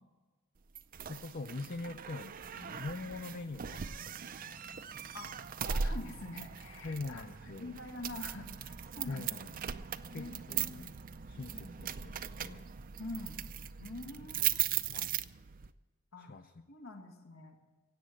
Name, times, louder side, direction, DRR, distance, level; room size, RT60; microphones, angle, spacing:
sound 1, 0.7-15.7, right 8 dB, 45° right, 0.5 m, -39 dB
voice 1, 1.1-4.6 6.8-7.8 9.1-9.5 10.1-11.0 11.3-12.7 14.4-14.5 14.9-15.2 16.2-16.5, left 3 dB, 45° left, 8 dB, 0.5 m, -44 dB
voice 2, 5.6-9.6 10.1-10.9 11.5-11.8 13.0-13.4 13.8-15.1 16.1-16.4 16.7-17.6, left 2 dB, 85° left, 3 dB, 1.8 m, -46 dB
17.0 x 8.5 x 7.7 m, 1.3 s
head